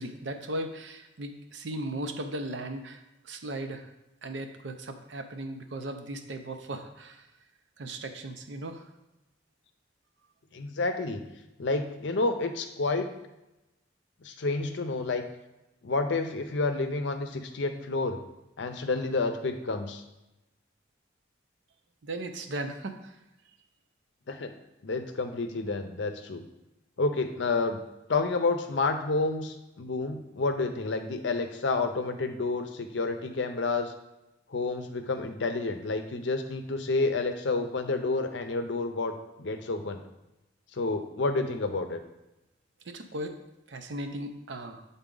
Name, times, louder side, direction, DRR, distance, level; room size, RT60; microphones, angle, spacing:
voice 1, 0.0-3.9 4.2-7.3 7.8-8.9 22.0-23.2 42.8-43.4 43.7-44.9, right 1 dB, 65° right, 7 dB, 0.6 m, -37 dB
voice 2, 10.5-11.2 11.6-13.1 14.2-15.2 15.8-18.2 18.6-20.0 24.3-24.5 24.8-26.4 27.0-27.8 28.1-33.9 34.5-40.0 40.7-42.0, left 3 dB, 65° left, 6 dB, 0.6 m, -29 dB
7.1 x 4.0 x 3.8 m, 0.95 s
head